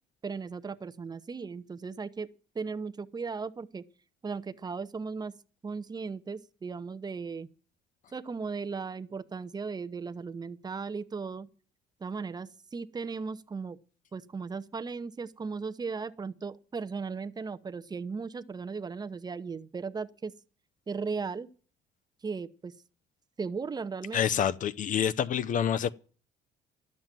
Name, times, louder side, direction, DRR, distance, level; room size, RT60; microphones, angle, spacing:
voice 1, 0.2-2.3 2.5-3.8 4.2-5.4 5.6-7.5 8.1-11.5 12.0-13.8 14.1-20.3 20.9-21.5 22.2-22.7 23.4-24.2, right 5 dB, 25° right, 0.8 m, -36 dB
voice 2, 24.1-25.9, left 9 dB, 50° left, 0.6 m, -27 dB
12.0 x 7.6 x 9.2 m
cardioid pair, 110°, 17 cm